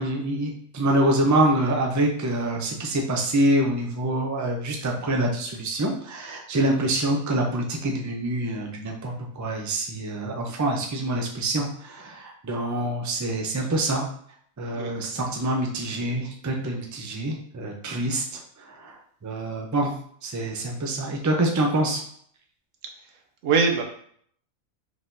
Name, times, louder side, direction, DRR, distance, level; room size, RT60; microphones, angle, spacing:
voice 1, 0.0-14.1 14.6-19.0 19.2-19.9 20.2-22.0, right 1 dB, 30° right, 1 dB, 0.3 m, -26 dB
voice 2, 22.8-23.8, right 5 dB, 70° right, 3 dB, 1.1 m, -24 dB
4.8 x 3.7 x 2.6 m, 0.62 s
omnidirectional pair, 1.4 m